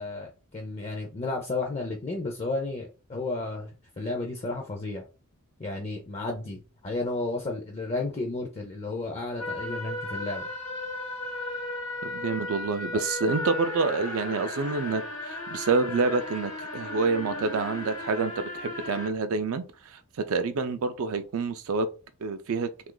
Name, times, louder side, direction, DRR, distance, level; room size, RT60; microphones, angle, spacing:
voice 1, 0.0-5.0 5.6-10.5 12.9-13.0, left 2 dB, 30° left, 0.4 m, -33 dB
sound 1, 9.4-19.1, left 2 dB, 80° left, 1.0 m, -35 dB
voice 2, 12.0-21.9 22.2-22.7, right 4 dB, 65° right, 0.4 m, -28 dB
2.8 x 2.4 x 3.7 m
head